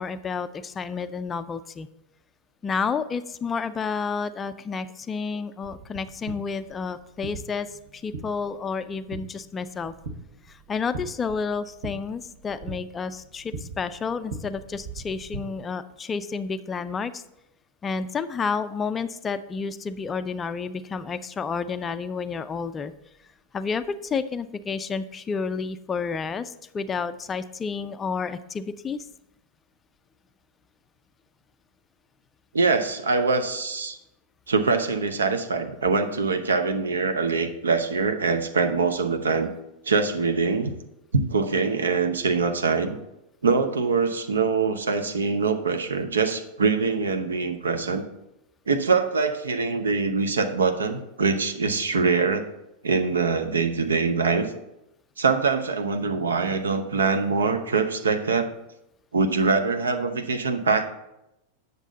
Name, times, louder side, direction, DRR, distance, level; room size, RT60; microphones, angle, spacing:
voice 1, 0.0-1.9 2.6-7.7 7.9-9.9 10.5-17.2 17.8-22.9 23.5-29.1, left 5 dB, 20° left, 12 dB, 0.4 m, -30 dB
sound 1, 5.6-15.4, right 3 dB, 50° right, 1.2 m, -41 dB
voice 2, 32.5-34.0 34.5-39.5 39.9-40.7 41.1-43.0 43.4-48.0 48.7-52.5 52.8-54.5 55.2-58.5 59.1-60.9, right 4 dB, 70° right, 7 dB, 0.7 m, -23 dB
8.1 x 6.7 x 3.9 m, 0.87 s
figure-of-eight pair, 90°, 0 cm